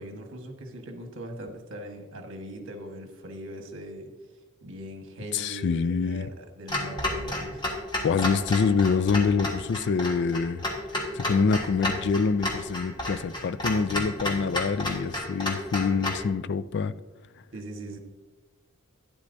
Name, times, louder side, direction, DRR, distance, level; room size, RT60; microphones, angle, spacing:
voice 1, 0.0-4.1 4.6-7.6 17.5-18.0, right 1 dB, 60° right, 4 dB, 1.4 m, -40 dB
voice 2, 5.3-6.3 8.0-10.6 11.1-16.9, left 5 dB, 50° left, 14 dB, 0.3 m, -25 dB
Clock, 6.7-16.3, left 1 dB, 20° left, 1.4 m, -32 dB
11.5 x 10.5 x 2.7 m, 1.1 s
head